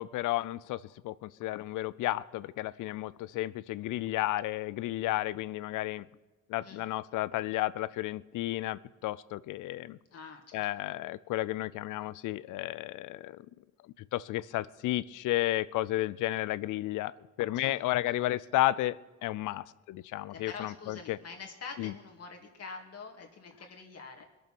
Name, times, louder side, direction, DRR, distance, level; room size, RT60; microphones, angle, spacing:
voice 1, 0.0-6.0 6.5-10.0 10.5-13.4 14.1-17.1 17.4-19.0 19.2-21.2 21.8-21.9, left 15 dB, 85° left, 18 dB, 0.6 m, -32 dB
voice 2, 10.1-10.6 17.5-17.7 20.3-24.3, left 4 dB, 55° left, 2 dB, 2.3 m, -45 dB
21.0 x 7.1 x 6.1 m, 1.2 s
cardioid pair, 90°, 30 cm